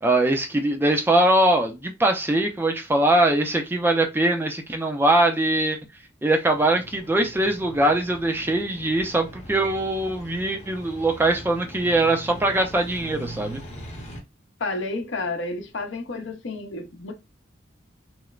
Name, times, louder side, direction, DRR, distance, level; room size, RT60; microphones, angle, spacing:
voice 1, 0.0-5.8 6.2-13.6, right 1 dB, 10° right, 0.3 m, -22 dB
sound 1, 6.5-14.2, right 1 dB, 35° left, 0.8 m, -41 dB
voice 2, 14.6-17.1, left 2 dB, 75° left, 0.6 m, -30 dB
3.0 x 2.0 x 2.3 m
head